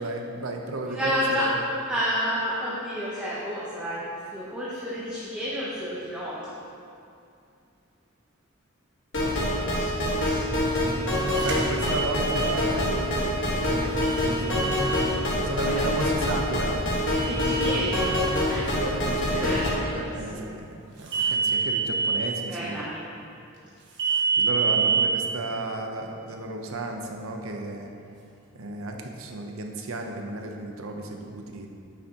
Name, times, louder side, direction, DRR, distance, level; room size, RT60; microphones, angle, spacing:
voice 1, 0.0-1.6 11.4-15.0 15.4-16.8 18.5-22.9 24.4-27.9 28.5-31.7, right 2 dB, 90° right, 3 dB, 0.8 m, -34 dB
voice 2, 0.9-1.5 1.9-6.6 9.3-9.9 10.2-10.4 15.6-15.8 17.3-18.2 18.5-18.7 19.4-20.5 22.5-23.0, equal, 5° right, -8 dB, 0.9 m, -31 dB
sound 1, 9.1-19.7, left 1 dB, 65° left, 1.4 m, -26 dB
sound 2, 11.3-12.4 14.0-15.1 17.1-18.2 21.1-22.2 24.0-25.1, right 5 dB, 60° right, 1.3 m, -27 dB
9.0 x 6.6 x 2.9 m, 2.6 s
head